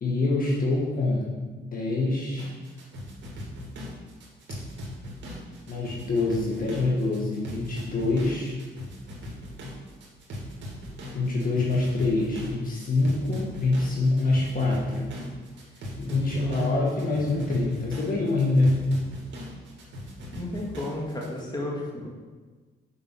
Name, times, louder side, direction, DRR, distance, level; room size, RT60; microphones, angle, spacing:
voice 1, 0.0-1.4 1.7-2.5 5.7-8.5 11.1-15.2 16.0-18.8, left 2 dB, 45° left, -3 dB, 1.8 m, -25 dB
sound 1, 2.4-21.4, equal, 65° right, 2.2 m, -40 dB
voice 2, 16.1-16.8 20.3-22.1, left 1 dB, 20° left, -2 dB, 2.1 m, -34 dB
7.0 x 5.4 x 6.1 m, 1.4 s
cardioid pair, 90°, 20 cm